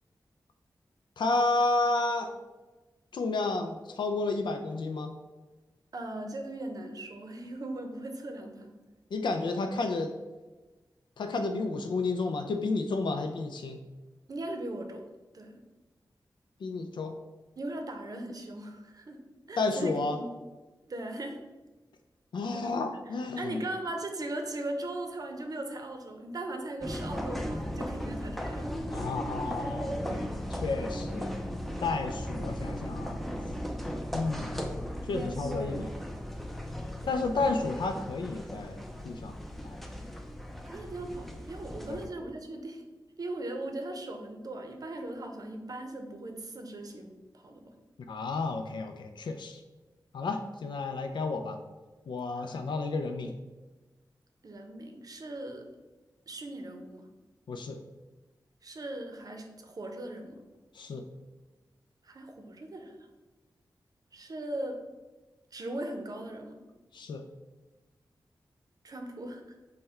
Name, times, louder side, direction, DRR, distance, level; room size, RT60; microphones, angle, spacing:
voice 1, 1.2-2.3 3.1-5.1 9.1-10.1 11.2-13.8 16.6-17.1 19.6-20.2 22.3-23.6 28.9-31.3 31.8-33.2 34.1-34.5 35.1-35.9 37.1-39.4 39.6-39.8 41.9-42.1 48.1-49.6 50.1-51.6 52.1-53.4 57.5-57.8 60.7-61.0 66.9-67.2, left 3 dB, 80° left, 5 dB, 0.4 m, -31 dB
voice 2, 5.9-8.7 14.3-15.0 15.3-15.6 17.6-19.2 19.5-20.3 20.9-21.4 23.4-28.7 37.0-37.5 40.7-42.8 43.2-47.7 52.4-52.6 54.4-55.6 56.3-57.1 58.6-60.4 62.0-63.0 64.1-64.8 65.5-66.6 68.8-69.5, right 1 dB, 50° right, 4 dB, 0.6 m, -39 dB
sound 1, 26.8-42.1, equal, ahead, 0.4 m, -37 dB
5.5 x 2.2 x 4.3 m, 1.2 s
wide cardioid pair, 90°, 8 cm